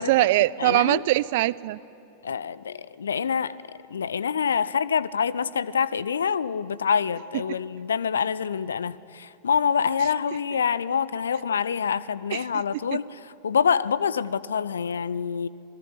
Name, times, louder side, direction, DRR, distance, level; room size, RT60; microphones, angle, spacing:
voice 1, 0.0-1.8 7.5-7.6 12.3-12.6 12.9-13.0, right 18 dB, 50° right, 21 dB, 0.6 m, -22 dB
voice 2, 0.6-1.0 2.2-3.6 3.9-13.1 13.4-15.5, left 7 dB, 70° left, 19 dB, 0.7 m, -26 dB
27.5 x 21.0 x 9.8 m, 2.6 s
figure-of-eight pair, 90°, 0 cm